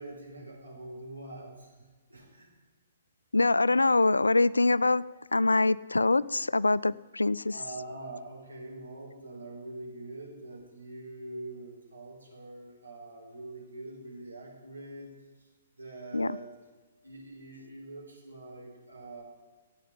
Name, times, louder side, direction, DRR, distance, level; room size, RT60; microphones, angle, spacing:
voice 1, 0.0-2.5 7.5-15.1 15.8-16.5 17.0-19.2, right 2 dB, 80° right, -1 dB, 4.5 m, -44 dB
voice 2, 3.3-5.0 5.3-7.6 16.1-16.4, left 2 dB, 75° left, 20 dB, 0.3 m, -24 dB
14.0 x 8.8 x 8.7 m, 1.3 s
figure-of-eight pair, 120°, 0 cm